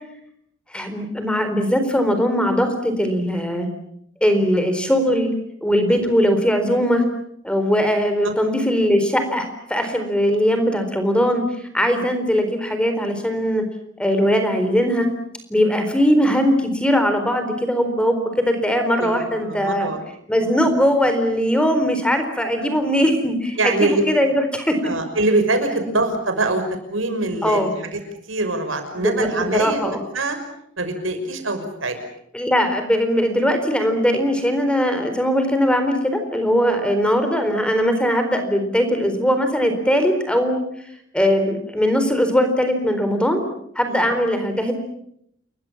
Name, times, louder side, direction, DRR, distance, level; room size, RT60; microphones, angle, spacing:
voice 1, 0.7-3.7 4.2-5.3 5.6-7.0 7.4-11.4 11.7-13.6 14.0-15.1 15.5-19.9 20.3-24.8 25.8-25.9 27.4-27.8 29.0-30.0 32.3-40.6 41.1-43.4 43.8-44.7, equal, 5° left, 7 dB, 4.1 m, -20 dB
voice 2, 19.0-20.0 20.4-20.7 23.6-24.0 24.8-26.6 26.9-28.0 28.3-30.4 30.8-32.0 43.9-44.1, right 2 dB, 85° right, 6 dB, 6.1 m, -24 dB
29.5 x 22.5 x 7.3 m, 0.73 s
head